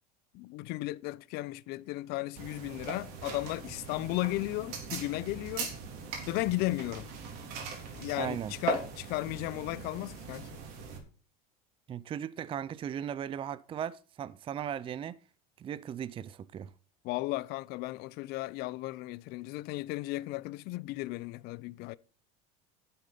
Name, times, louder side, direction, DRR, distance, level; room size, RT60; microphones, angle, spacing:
voice 1, 0.3-5.7 6.3-7.1 7.9-10.6 17.0-22.0, left 19 dB, 60° left, 0.7 m, -35 dB
sound 1, 2.4-11.0, right 5 dB, 65° right, 3.6 m, -40 dB
voice 2, 8.2-8.5 11.9-15.2 15.6-16.7, right 9 dB, 30° right, 0.5 m, -37 dB
11.5 x 7.7 x 5.4 m
supercardioid pair, 105°, 18 cm